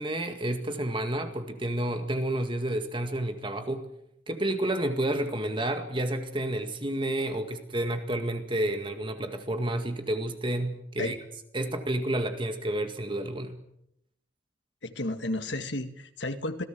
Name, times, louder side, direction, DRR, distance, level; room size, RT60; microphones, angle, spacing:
voice 1, 0.0-3.9 4.3-11.2 11.5-13.6, right 1 dB, 25° right, 6 dB, 1.9 m, -30 dB
voice 2, 14.8-16.6, left 1 dB, 70° left, 8 dB, 2.0 m, -32 dB
27.0 x 17.5 x 7.7 m, 0.78 s
head